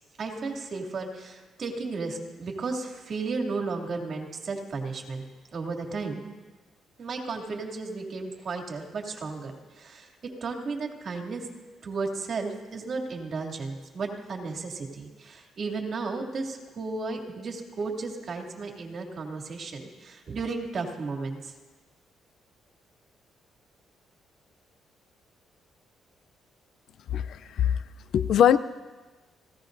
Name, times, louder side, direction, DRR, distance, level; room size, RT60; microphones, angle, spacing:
voice 1, 0.2-5.3 5.5-6.3 7.0-11.4 11.8-21.5, right 4 dB, 50° right, 1 dB, 2.7 m, -34 dB
voice 2, 27.1-27.8 28.1-28.6, left 9 dB, 70° left, 15 dB, 0.5 m, -21 dB
27.5 x 16.0 x 2.7 m, 1.2 s
cardioid pair, 90°, 0 cm